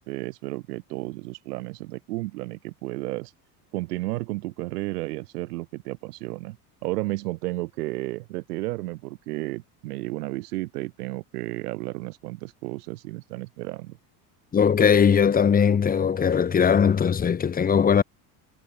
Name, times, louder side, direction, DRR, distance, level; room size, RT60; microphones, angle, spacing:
voice 1, 0.0-3.3 3.7-6.6 6.8-14.0, right 19 dB, 85° right, 0.8 m, -32 dB
voice 2, 14.5-18.0, left 7 dB, 20° left, 0.7 m, -20 dB
hypercardioid pair, 85°, 45 cm